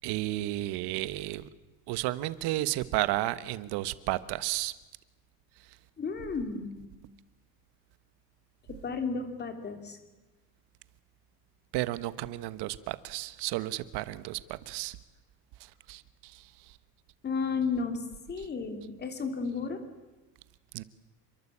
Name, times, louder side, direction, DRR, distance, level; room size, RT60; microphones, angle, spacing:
voice 1, 0.0-1.5 1.9-4.8 5.6-5.8 11.7-15.0 15.6-16.8 18.4-18.5 20.7-20.8, right 16 dB, 85° right, 15 dB, 1.4 m, -33 dB
voice 2, 6.0-6.8 8.7-10.0 17.2-18.0 18.3-19.8, left 4 dB, 25° left, 7 dB, 3.1 m, -33 dB
28.5 x 22.5 x 8.6 m, 1.1 s
cardioid pair, 175°, 39 cm